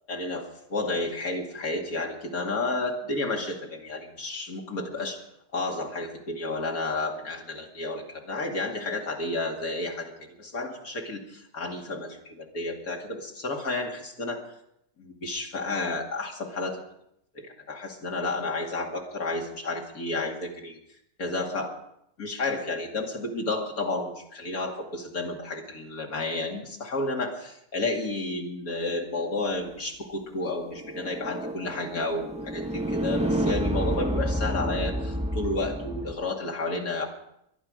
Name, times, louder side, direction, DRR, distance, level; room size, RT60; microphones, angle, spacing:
voice 1, 0.1-5.2 5.5-14.4 15.0-16.8 17.3-20.8 21.2-21.7 22.2-37.1, left 2 dB, 60° left, 0 dB, 2.8 m, -31 dB
sound 1, 30.6-36.1, right 1 dB, 10° right, 0.4 m, -29 dB
23.0 x 10.5 x 5.1 m, 0.77 s
omnidirectional pair, 1.7 m